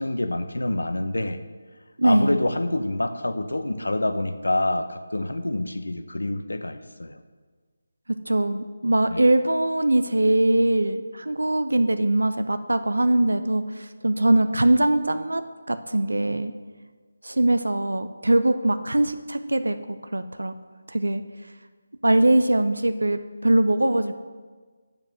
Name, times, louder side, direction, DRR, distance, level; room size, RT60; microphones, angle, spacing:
voice 1, 0.0-1.4 2.0-7.2 9.1-9.2, left 1 dB, 85° left, 10 dB, 0.8 m, -26 dB
voice 2, 2.0-2.4 8.1-16.5 17.2-20.5 20.9-21.2 22.0-24.1, right 1 dB, 85° right, 10 dB, 0.5 m, -22 dB
7.9 x 7.0 x 7.6 m, 1.4 s
figure-of-eight pair, 160°, 0 cm